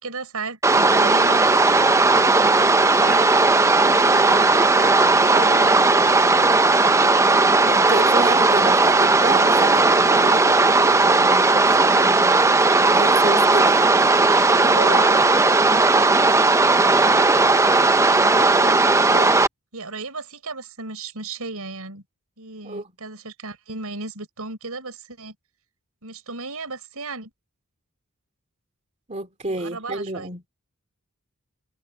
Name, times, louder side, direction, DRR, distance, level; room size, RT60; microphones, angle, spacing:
voice 1, 0.0-1.8 2.2-3.3 4.2-6.4 14.2-15.3 15.6-16.3 18.1-19.4 19.7-22.0 22.4-25.3 26.0-27.3 29.5-30.3, right 3 dB, 75° right, 5.1 m, -35 dB
sound 1, 0.6-19.5, right 3 dB, 15° right, 0.5 m, -16 dB
voice 2, 3.7-4.5 7.6-12.4 12.8-13.9 22.6-22.9 29.1-30.4, right 2 dB, 30° right, 2.6 m, -30 dB
head